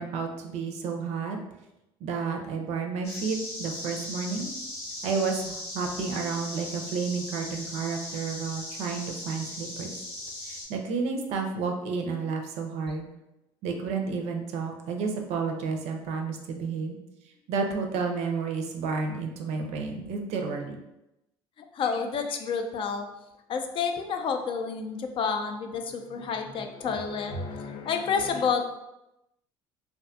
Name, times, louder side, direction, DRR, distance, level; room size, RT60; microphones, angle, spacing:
voice 1, 0.0-1.4 2.0-4.5 5.0-9.9 10.4-13.1 13.6-17.0 17.5-20.8, right 5 dB, 65° right, 4 dB, 0.4 m, -31 dB
sound 1, 3.0-10.7, left 1 dB, 70° left, 1.0 m, -38 dB
voice 2, 21.7-23.1 23.5-28.6, left 6 dB, 45° left, 5 dB, 0.4 m, -29 dB
2.5 x 2.2 x 2.5 m, 0.91 s
supercardioid pair, 75°, 12 cm